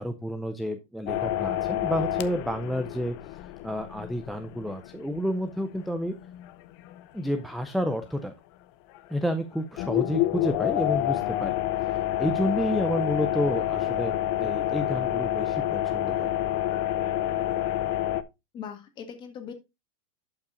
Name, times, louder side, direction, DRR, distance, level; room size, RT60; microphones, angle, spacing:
voice 1, 0.0-6.1 7.1-8.3 9.1-11.5 11.9-16.3, equal, ahead, 9 dB, 0.4 m, -30 dB
sound 1, 1.1-7.0 7.4-7.5 9.0-9.3 9.8-18.2, left 13 dB, 45° left, 0.6 m, -28 dB
voice 2, 18.5-19.5, left 7 dB, 25° left, 7 dB, 1.6 m, -40 dB
11.5 x 5.6 x 2.5 m, 0.23 s
supercardioid pair, 155°, 18 cm